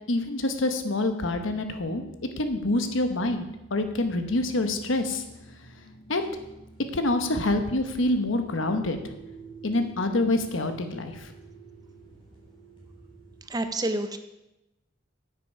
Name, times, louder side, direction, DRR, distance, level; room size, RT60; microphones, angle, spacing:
voice 1, 0.1-2.0 2.4-5.2 6.1-6.3 6.9-9.0 9.6-11.3, left 2 dB, 80° left, 7 dB, 1.1 m, -26 dB
sound 1, 1.5-13.5, right 3 dB, 25° left, 3.5 m, -49 dB
voice 2, 13.5-14.2, right 2 dB, 20° right, 9 dB, 0.7 m, -28 dB
9.6 x 8.2 x 5.5 m, 0.93 s
head